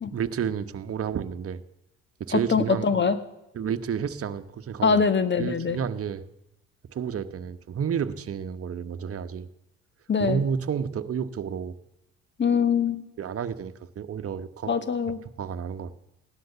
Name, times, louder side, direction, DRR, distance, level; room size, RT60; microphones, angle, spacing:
voice 1, 0.1-1.6 2.2-2.9 3.5-5.0 5.4-6.2 6.9-9.5 10.2-11.7 13.2-14.7 15.4-15.9, right 7 dB, 45° right, 9 dB, 1.3 m, -31 dB
voice 2, 2.3-3.2 4.8-5.8 10.1-10.4 12.4-13.0 14.7-15.2, left 5 dB, 35° left, 13 dB, 1.6 m, -23 dB
17.0 x 12.0 x 6.9 m, 0.91 s
supercardioid pair, 70°, 33 cm